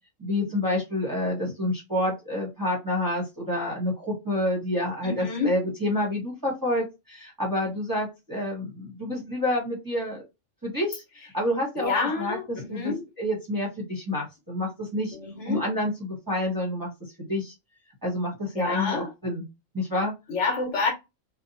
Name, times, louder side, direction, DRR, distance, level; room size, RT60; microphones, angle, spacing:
voice 1, 0.2-10.2 10.6-11.9 12.2-12.4 12.7-15.1 15.5-16.9 17.2-17.5 18.0-19.4 19.7-20.1, left 1 dB, 20° right, 0.7 m, -28 dB
voice 2, 5.0-5.6 11.8-13.0 15.1-15.6 18.5-19.1 20.3-20.9, left 4 dB, 65° left, 1.3 m, -28 dB
2.7 x 2.1 x 2.6 m
omnidirectional pair, 1.4 m